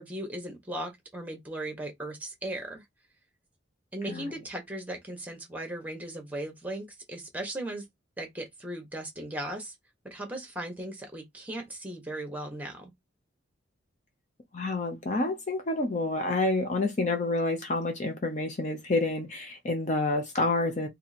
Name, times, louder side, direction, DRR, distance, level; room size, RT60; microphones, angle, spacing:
voice 1, 0.0-2.8 3.9-7.8 8.2-9.7 10.0-12.9, right 1 dB, 10° right, 1.2 m, -37 dB
voice 2, 14.5-20.9, left 2 dB, 40° left, 0.6 m, -28 dB
2.8 x 2.7 x 4.1 m
head